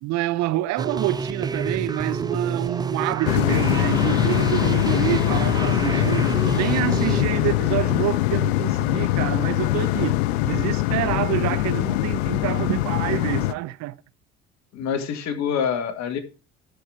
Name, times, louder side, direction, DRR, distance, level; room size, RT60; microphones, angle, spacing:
voice 1, 0.0-14.0, right 16 dB, 60° right, 0.7 m, -27 dB
sound 1, 0.8-7.2, right 5 dB, 15° right, 0.4 m, -28 dB
sound 2, 3.3-13.5, left 16 dB, 75° left, 0.5 m, -22 dB
voice 2, 14.7-16.2, left 7 dB, 60° left, 1.9 m, -26 dB
12.5 x 5.3 x 4.6 m
hypercardioid pair, 60°, 32 cm